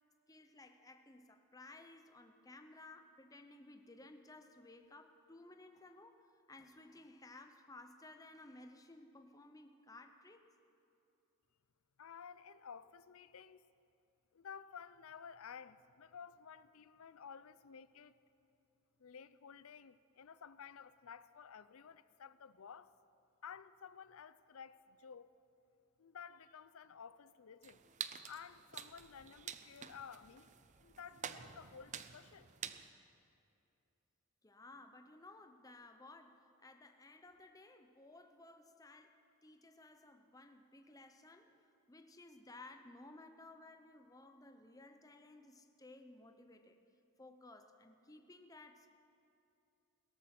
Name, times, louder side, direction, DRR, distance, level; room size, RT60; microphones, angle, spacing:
voice 1, 0.3-6.2 6.5-10.5 32.7-33.1 34.4-41.6 41.9-46.8 47.2-48.9, left 2 dB, 15° left, 0.7 m, -57 dB
voice 2, 12.0-13.6 14.3-18.1 19.0-22.9 23.4-25.3 26.0-27.8 28.3-30.5 30.8-32.5, left 7 dB, 70° left, 0.5 m, -53 dB
sound 1, 27.6-32.9, right 8 dB, 35° right, 0.5 m, -49 dB
17.5 x 13.5 x 5.9 m
head